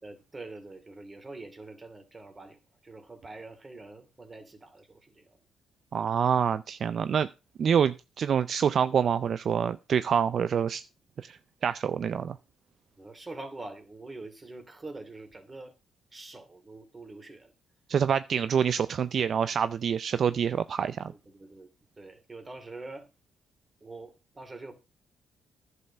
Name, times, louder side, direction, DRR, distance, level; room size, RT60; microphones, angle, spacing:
voice 1, 0.0-5.4 13.0-15.7 16.1-17.5 21.1-21.7 22.0-23.1 23.8-24.7, right 2 dB, 25° right, 2.7 m, -45 dB
voice 2, 5.9-7.3 7.6-10.8 11.2-12.4 17.9-21.1, right 7 dB, 55° right, 0.5 m, -26 dB
10.5 x 6.8 x 5.6 m
cardioid pair, 90°, 0 cm